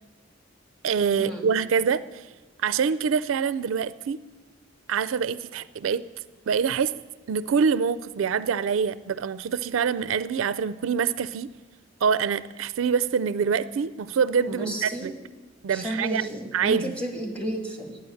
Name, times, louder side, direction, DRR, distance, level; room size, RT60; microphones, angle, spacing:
voice 1, 0.8-2.2 2.6-4.2 4.9-6.0 6.5-6.9 7.3-11.5 12.0-15.1 15.6-16.9, right 6 dB, 85° right, 16 dB, 0.4 m, -25 dB
voice 2, 14.5-15.2 15.7-18.0, right 1 dB, 5° left, 2 dB, 1.7 m, -32 dB
11.0 x 9.4 x 7.7 m, 1.2 s
head